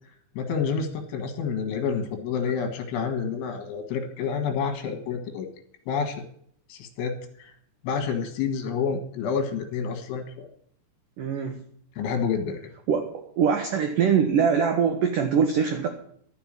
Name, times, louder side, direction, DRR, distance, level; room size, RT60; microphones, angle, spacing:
voice 1, 0.4-5.5 5.9-6.2 6.7-7.1 7.4-7.5 7.8-10.2 12.0-12.6, left 6 dB, 75° left, 6 dB, 4.1 m, -28 dB
voice 2, 11.2-11.6 12.9-15.9, right 7 dB, 90° right, 5 dB, 1.8 m, -23 dB
13.0 x 7.0 x 8.8 m, 0.64 s
omnidirectional pair, 5.5 m